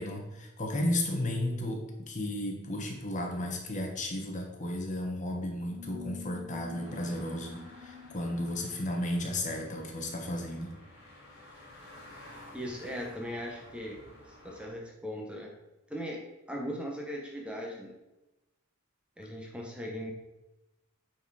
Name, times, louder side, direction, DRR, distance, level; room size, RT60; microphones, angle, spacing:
voice 1, 0.0-10.7, left 1 dB, 35° left, 2 dB, 1.3 m, -34 dB
sound 1, 5.7-10.9, left 4 dB, 35° right, 1.9 m, -49 dB
sound 2, 6.7-14.7, left 1 dB, 55° left, 3.1 m, -53 dB
voice 2, 12.5-14.0 14.3-15.5 15.9-16.2 16.5-17.9 19.2-20.1, equal, 5° right, 0 dB, 1.0 m, -38 dB
9.1 x 4.4 x 4.8 m, 0.98 s
head